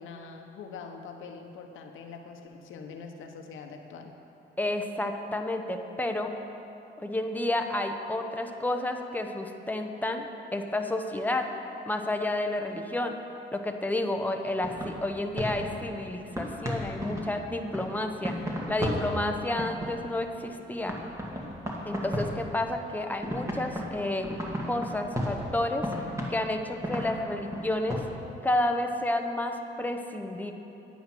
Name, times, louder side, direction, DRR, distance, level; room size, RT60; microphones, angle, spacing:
voice 1, 0.0-4.1, left 5 dB, 80° left, 4 dB, 1.1 m, -43 dB
voice 2, 4.6-6.3 7.0-11.5 11.9-13.2 13.5-21.0 21.8-24.3 24.6-25.9 26.3-28.0 28.4-30.5, left 1 dB, 10° left, 4 dB, 0.9 m, -30 dB
sound 1, 14.6-20.6 20.9-23.0 23.2-28.0, equal, 15° right, 1.9 m, -35 dB
9.4 x 9.3 x 6.2 m, 2.9 s
cardioid pair, 90°, 20 cm